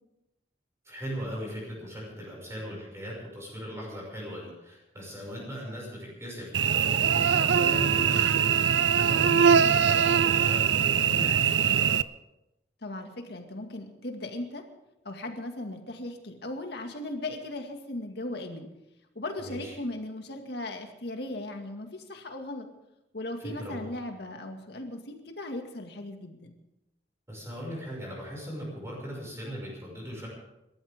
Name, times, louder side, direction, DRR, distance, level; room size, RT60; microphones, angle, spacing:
voice 1, 0.8-12.0 19.4-19.7 23.4-23.9 27.3-30.3, equal, 15° right, -4 dB, 6.2 m, -38 dB
Cricket / Buzz, 6.5-12.0, right 7 dB, 85° right, 0.5 m, -22 dB
voice 2, 12.8-14.6 15.0-18.7 19.2-22.7 23.1-26.6, left 2 dB, 65° left, 4 dB, 2.1 m, -37 dB
27.0 x 13.0 x 3.7 m, 0.90 s
head